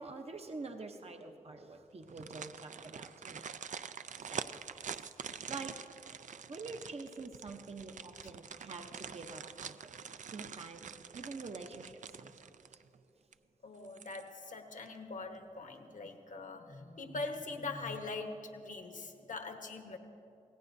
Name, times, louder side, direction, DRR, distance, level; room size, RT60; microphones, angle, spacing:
voice 1, 0.0-3.5 4.2-5.1 5.5-5.8 6.5-9.9 10.3-10.9 11.1-12.3 12.7-12.8, right 3 dB, 50° right, 4 dB, 0.8 m, -46 dB
sound 1, 2.0-13.0 13.3-13.4 13.8-14.5 14.9-15.0, right 7 dB, 65° right, 0.4 m, -46 dB
voice 2, 13.6-20.0, left 3 dB, 70° left, 5 dB, 1.2 m, -42 dB
25.0 x 17.5 x 2.6 m, 2.8 s
wide cardioid pair, 75°, 14 cm